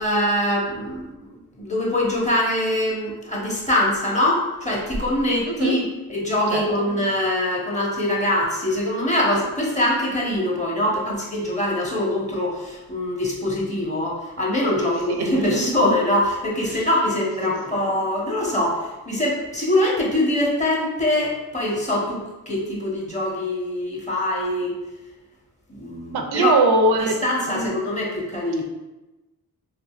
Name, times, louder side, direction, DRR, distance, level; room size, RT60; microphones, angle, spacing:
voice 1, 0.0-24.7 25.7-26.5 27.2-28.6, left 1 dB, 20° left, -4 dB, 1.0 m, -23 dB
voice 2, 15.1-15.6 16.7-16.9 26.1-27.2 27.5-27.7, right 2 dB, 85° right, 3 dB, 0.5 m, -21 dB
3.6 x 2.5 x 2.4 m, 1.1 s
cardioid pair, 60°, 37 cm